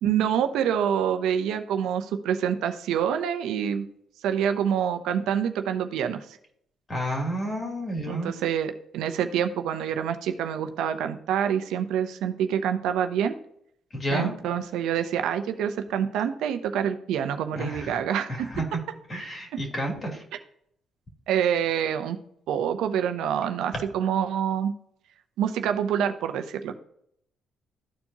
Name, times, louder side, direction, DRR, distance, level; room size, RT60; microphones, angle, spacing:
voice 1, 0.0-3.8 4.2-6.3 8.1-13.4 14.1-18.5 21.3-22.2 22.5-24.7 25.4-26.7, right 9 dB, 85° right, 8 dB, 0.7 m, -26 dB
voice 2, 6.9-8.3 13.9-14.3 17.5-17.9 18.3-18.8 19.1-20.2, right 1 dB, 30° left, 1 dB, 3.0 m, -30 dB
13.5 x 4.5 x 2.8 m, 0.69 s
cardioid pair, 90°, 0 cm